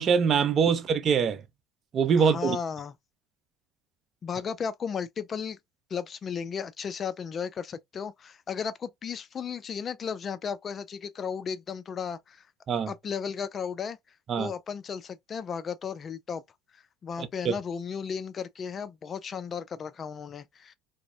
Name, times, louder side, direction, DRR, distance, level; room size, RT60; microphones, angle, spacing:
voice 1, 0.0-1.4 1.9-2.6 12.7-12.9 14.3-14.5 17.2-17.5, right 6 dB, 45° right, 0.5 m, -24 dB
voice 2, 2.2-2.9 4.2-5.6 5.9-12.5 12.9-14.0 14.4-16.4 16.7-20.7, left 6 dB, 40° left, 0.3 m, -35 dB
2.6 x 2.0 x 2.4 m
hypercardioid pair, 85°, 0 cm